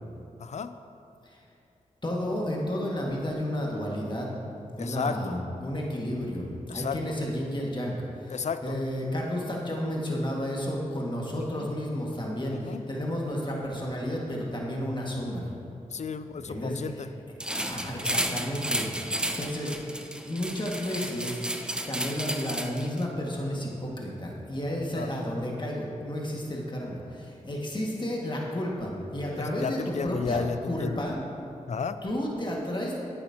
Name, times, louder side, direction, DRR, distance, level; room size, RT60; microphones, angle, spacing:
voice 1, 0.4-0.7 4.8-5.3 6.7-7.0 8.3-8.8 11.5-11.7 12.5-12.8 15.9-17.1 24.9-25.1 29.3-31.0 31.7-32.0, left 5 dB, 55° left, 11 dB, 0.5 m, -32 dB
voice 2, 2.0-4.3 4.8-15.5 16.3-17.1 17.4-20.0 20.3-21.4 21.9-31.2 32.0-33.0, equal, 35° left, -2 dB, 1.9 m, -32 dB
sound 1, 17.4-23.0, right 1 dB, 5° right, 0.7 m, -32 dB
11.0 x 8.8 x 2.9 m, 2.6 s
cardioid pair, 40°, 14 cm